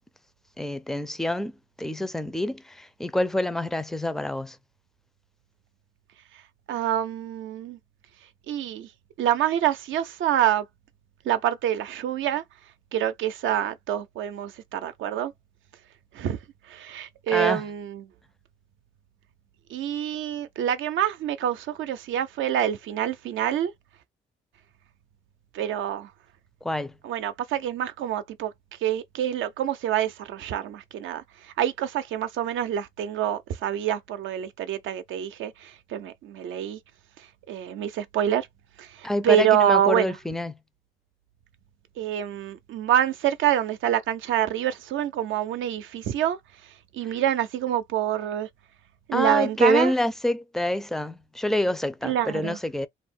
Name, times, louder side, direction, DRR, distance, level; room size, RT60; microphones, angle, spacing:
voice 1, 0.6-4.6 17.3-17.6 26.6-26.9 39.0-40.6 49.1-52.9, left 1 dB, ahead, 0.4 m, -27 dB
voice 2, 6.7-7.8 8.5-8.9 9.2-10.7 11.2-12.4 12.9-15.3 16.1-16.4 16.7-18.0 19.7-23.7 25.5-26.1 27.0-28.5 28.8-36.8 37.5-38.5 38.8-40.2 42.0-46.4 46.9-48.5 49.1-49.9 52.0-52.6, right 11 dB, 75° right, 0.5 m, -26 dB
2.4 x 2.1 x 3.6 m
cardioid pair, 90°, 20 cm